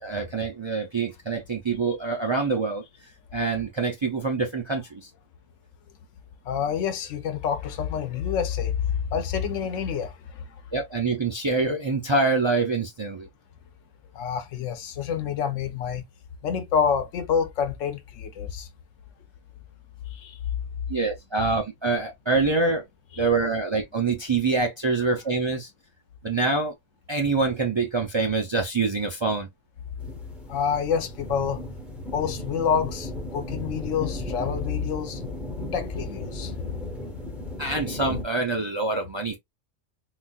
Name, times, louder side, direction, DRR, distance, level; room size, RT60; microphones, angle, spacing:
voice 1, 0.0-2.8 3.3-5.1 10.7-13.3 20.9-22.8 23.2-25.7 26.2-26.7 27.1-29.5 37.6-39.4, right 3 dB, 45° right, 0.3 m, -25 dB
voice 2, 6.5-10.4 14.1-16.0 16.4-18.7 20.1-20.4 23.1-23.2 30.5-31.6 32.1-35.2 35.7-36.5, left 7 dB, 85° left, 1.0 m, -27 dB
sound 1, 30.0-38.2, left 1 dB, ahead, 1.0 m, -35 dB
3.9 x 2.5 x 2.3 m
omnidirectional pair, 1.3 m